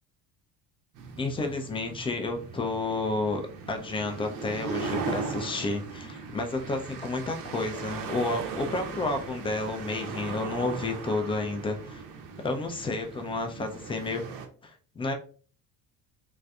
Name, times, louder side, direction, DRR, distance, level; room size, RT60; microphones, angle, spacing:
sound 1, 1.0-14.5, right 5 dB, 45° right, 0.7 m, -38 dB
voice 1, 1.2-3.4 3.7-12.0 12.4-14.2 14.6-15.1, left 2 dB, 10° left, 4 dB, 0.4 m, -31 dB
3.2 x 2.4 x 2.3 m, 0.40 s
figure-of-eight pair, 60°, 48 cm